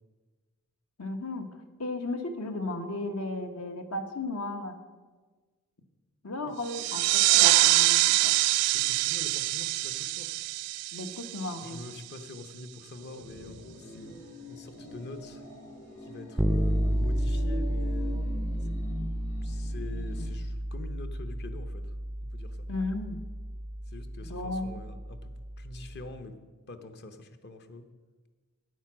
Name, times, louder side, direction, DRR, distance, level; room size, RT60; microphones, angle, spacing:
voice 1, 1.0-4.8 6.2-8.3 10.9-11.8 22.7-23.2 24.2-24.7, left 2 dB, 70° left, 7 dB, 1.1 m, -35 dB
sound 1, 6.6-12.0, right 17 dB, 85° right, 0.3 m, -25 dB
voice 2, 8.7-10.3 11.6-14.2 14.5-15.4 16.0-18.2 18.6-18.7 19.4-21.9 22.3-22.6 23.9-26.4 26.7-27.9, left 3 dB, 50° left, 9 dB, 0.8 m, -44 dB
sound 2, 12.9-20.2, left 1 dB, 90° left, 3.5 m, -43 dB
Bass guitar, 16.4-26.0, equal, 5° right, 0.3 m, -32 dB
9.3 x 9.2 x 6.1 m, 1.4 s
head